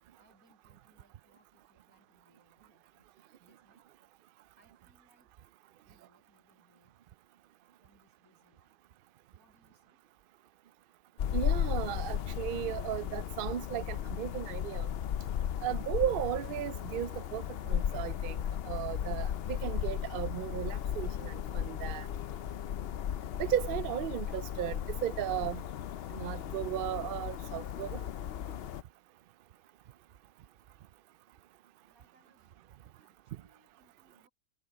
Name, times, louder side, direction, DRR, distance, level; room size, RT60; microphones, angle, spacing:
voice 1, 0.2-3.1 3.4-3.9 4.6-5.3 5.8-7.0 7.8-8.8 9.4-10.0 31.9-32.6 33.0-34.3, right 1 dB, 85° right, 7.2 m, -69 dB
sound 1, 11.2-28.8, left 10 dB, 65° left, 0.6 m, -35 dB
voice 2, 11.3-14.9 15.6-18.4 18.7-22.1 23.4-25.6 26.1-28.0, right 11 dB, 65° right, 0.5 m, -35 dB
omnidirectional pair, 1.5 m